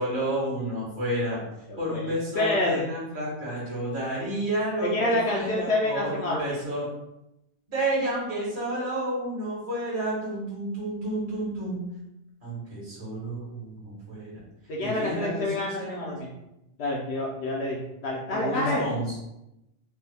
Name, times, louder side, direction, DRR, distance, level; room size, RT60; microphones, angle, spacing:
voice 1, 0.0-1.4 1.8-6.9 7.7-11.8 12.4-14.3 14.8-16.2 18.3-19.2, right 1 dB, 75° right, -8 dB, 1.9 m, -30 dB
voice 2, 1.7-2.8 4.8-6.6 14.7-16.3 16.8-18.8, left 1 dB, 80° left, -4 dB, 0.9 m, -28 dB
4.5 x 2.2 x 3.3 m, 0.88 s
omnidirectional pair, 1.1 m